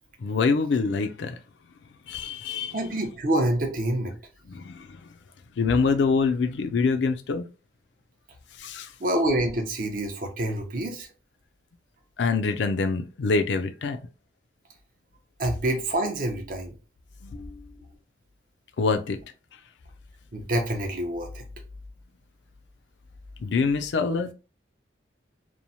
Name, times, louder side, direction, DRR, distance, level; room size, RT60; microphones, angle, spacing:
voice 1, 0.2-1.4 2.1-2.8 4.5-5.0 5.6-7.4 8.6-8.9 12.2-14.0 17.2-17.7 18.8-19.2 23.4-24.3, left 4 dB, 75° left, 0.4 m, -25 dB
voice 2, 2.7-4.1 9.0-11.1 15.4-16.7 20.3-21.4, right 1 dB, 50° right, 0.6 m, -27 dB
3.0 x 2.0 x 2.6 m
head